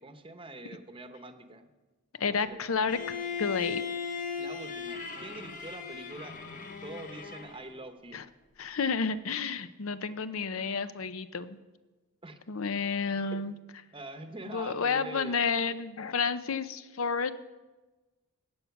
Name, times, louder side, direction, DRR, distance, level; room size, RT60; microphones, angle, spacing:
voice 1, 0.0-1.7 2.2-2.6 4.4-6.3 6.8-8.3 12.2-12.4 13.3-13.5 13.9-15.4, right 2 dB, 25° right, 8 dB, 0.9 m, -44 dB
voice 2, 2.2-3.8 8.1-8.2 8.6-11.6 12.5-13.5 14.5-17.3, left 5 dB, 75° left, 13 dB, 0.7 m, -31 dB
Bowed string instrument, 2.9-7.8, left 6 dB, 40° left, 1.2 m, -37 dB
15.0 x 8.7 x 5.9 m, 1.2 s
head